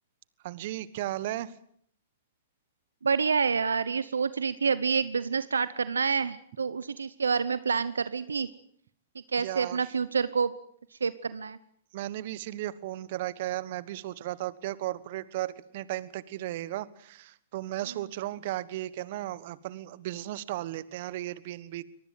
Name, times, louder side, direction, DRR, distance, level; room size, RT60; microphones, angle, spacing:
voice 1, 0.4-1.5 9.4-9.8 11.9-21.8, right 15 dB, 55° right, 18 dB, 1.3 m, -35 dB
voice 2, 3.0-8.5 9.3-10.5 11.0-11.6, right 5 dB, 85° right, 16 dB, 0.9 m, -28 dB
24.0 x 19.0 x 7.7 m, 0.63 s
hypercardioid pair, 120°, 0 cm